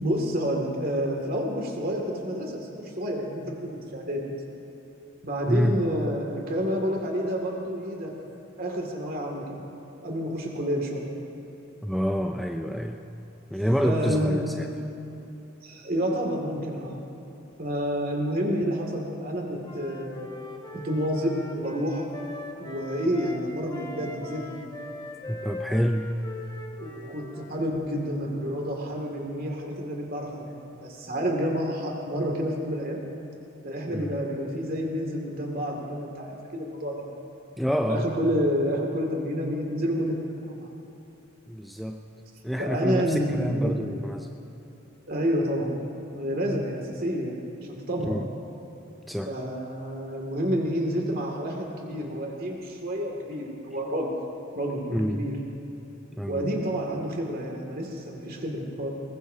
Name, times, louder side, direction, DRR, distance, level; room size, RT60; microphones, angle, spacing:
voice 1, 0.0-4.3 5.2-8.1 8.6-9.4 10.0-11.1 13.8-14.8 15.6-17.0 17.6-22.1 22.6-24.6 26.8-33.0 33.6-37.1 37.9-40.7 42.6-43.9 45.1-45.8 46.1-48.2 49.3-54.1 54.5-55.3 56.3-59.0, equal, 45° right, 0 dB, 2.2 m, -29 dB
voice 2, 5.5-5.8 11.8-13.0 13.5-14.7 25.3-26.1 33.9-34.1 37.6-38.1 41.5-42.0 42.4-44.3 48.0-48.3 49.1-49.3 54.9-55.2 56.2-56.5, equal, ahead, 3 dB, 0.4 m, -27 dB
Wind instrument woodwind instrument, 19.6-23.4 23.7-27.8, left 2 dB, 20° left, 1.1 m, -41 dB
21.5 x 20.0 x 2.8 m, 3.0 s
head